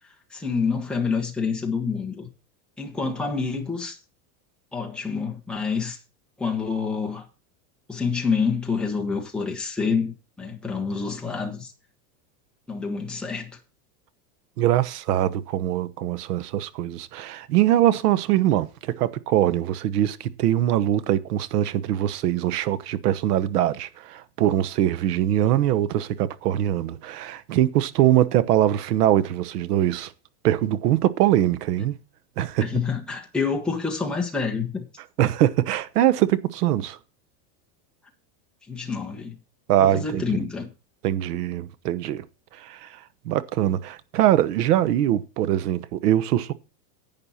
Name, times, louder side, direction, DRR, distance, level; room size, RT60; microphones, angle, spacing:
voice 1, 0.3-2.3 2.8-4.0 4.7-6.0 6.4-7.3 7.9-11.7 12.7-13.5 32.6-34.8 38.7-39.4 39.8-40.7, left 5 dB, ahead, 1.2 m, -27 dB
voice 2, 14.6-30.1 30.4-31.9 32.4-32.6 35.2-37.0 39.7-40.2 41.0-42.2 42.6-43.0 43.2-46.5, right 12 dB, 80° right, 1.1 m, -22 dB
11.0 x 8.8 x 4.2 m
supercardioid pair, 175°, 46 cm